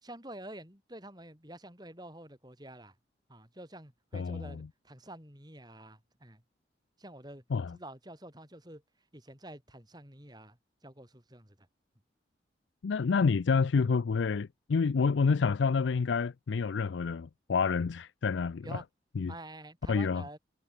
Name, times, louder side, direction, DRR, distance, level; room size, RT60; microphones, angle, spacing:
voice 1, 0.0-2.9 3.3-6.4 7.0-7.4 7.7-8.8 9.1-10.6 10.8-11.6 18.6-18.8 19.3-20.4, right 1 dB, 20° right, 5.9 m, -48 dB
voice 2, 4.1-4.7 7.5-7.8 12.8-18.8 19.2-19.3 19.9-20.2, left 5 dB, 85° left, 0.4 m, -28 dB
head